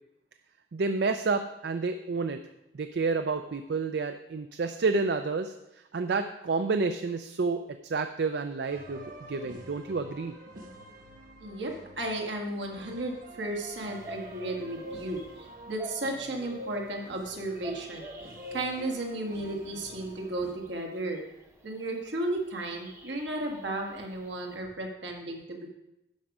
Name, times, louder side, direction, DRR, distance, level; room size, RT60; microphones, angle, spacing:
voice 1, 0.7-2.4 2.7-5.5 5.9-10.3, right 4 dB, 65° right, 8 dB, 0.4 m, -29 dB
sound 1, 8.7-20.5, right 1 dB, 50° right, 1.2 m, -48 dB
voice 2, 11.4-18.1 18.5-21.2 21.6-25.7, right 1 dB, 80° right, 1 dB, 1.7 m, -34 dB
sound 2, 13.7-21.9 22.5-24.6, right 1 dB, 15° right, 0.7 m, -46 dB
11.5 x 5.3 x 4.9 m, 0.90 s
head